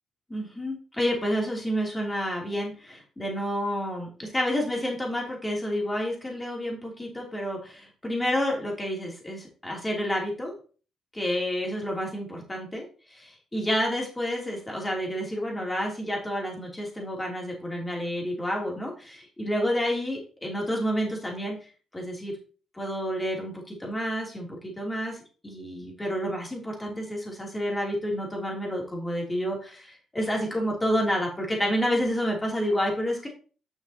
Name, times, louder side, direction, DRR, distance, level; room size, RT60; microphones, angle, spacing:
voice 1, 0.3-10.5 11.1-12.8 13.1-21.5 21.9-22.3 22.7-25.2 25.4-33.3, equal, 15° left, -1 dB, 3.2 m, -29 dB
9.9 x 6.3 x 3.0 m, 0.38 s
cardioid pair, 90°, 0 cm